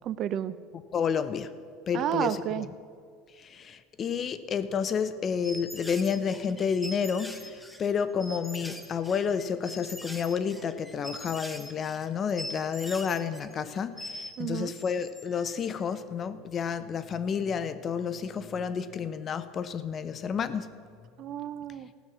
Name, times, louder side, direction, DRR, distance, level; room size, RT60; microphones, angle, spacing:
voice 1, 0.0-0.6 1.9-2.7 14.4-14.7 21.2-21.9, right 11 dB, 40° right, 15 dB, 0.5 m, -31 dB
voice 2, 0.9-1.5 1.9-2.7 3.4-20.7, left 6 dB, 30° left, 12 dB, 0.5 m, -30 dB
sound 1, 5.4-14.4 14.7-15.5, equal, 5° left, 0.9 m, -42 dB
15.5 x 6.3 x 7.3 m, 2.2 s
supercardioid pair, 140°, 0 cm